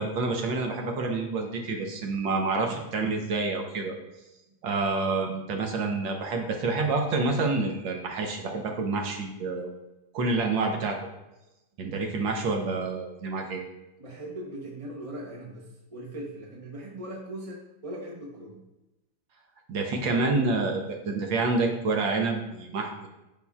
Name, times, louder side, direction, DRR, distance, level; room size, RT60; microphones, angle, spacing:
voice 1, 0.0-3.9 4.6-9.7 10.1-11.0 11.8-13.6 19.7-23.1, right 3 dB, 80° right, 2 dB, 1.7 m, -28 dB
voice 2, 14.0-18.6, right 1 dB, 30° right, -2 dB, 0.6 m, -40 dB
12.0 x 4.4 x 2.4 m, 0.97 s
omnidirectional pair, 2.0 m